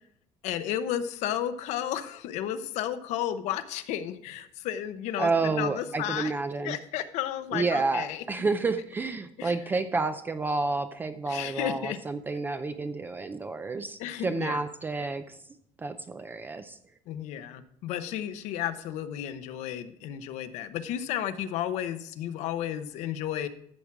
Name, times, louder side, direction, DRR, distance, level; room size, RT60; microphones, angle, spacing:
voice 1, 0.4-5.3 5.6-6.3 6.6-8.2 9.4-9.5 11.3-12.0 14.0-14.6 17.1-23.5, left 11 dB, 80° left, 11 dB, 0.9 m, -33 dB
voice 2, 5.2-6.8 7.5-15.4 15.8-16.8, right 3 dB, 15° right, 10 dB, 0.4 m, -30 dB
13.0 x 7.4 x 4.7 m, 0.69 s
cardioid pair, 175°, 12 cm